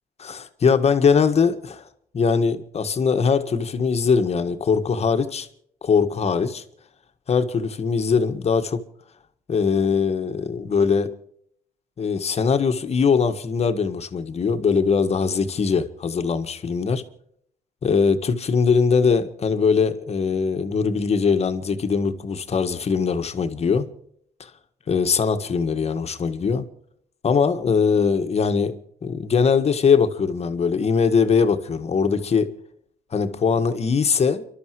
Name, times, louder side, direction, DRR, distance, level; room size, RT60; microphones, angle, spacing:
voice 1, 0.2-1.8 2.1-5.5 5.8-6.6 7.3-8.8 9.5-11.1 12.0-17.0 17.8-23.9 24.4-24.5 24.9-26.6 27.2-28.7 29.0-32.5 33.1-34.4, left 5 dB, 40° left, 1.7 m, -21 dB
30.0 x 12.5 x 3.2 m
cardioid pair, 85°, 16 cm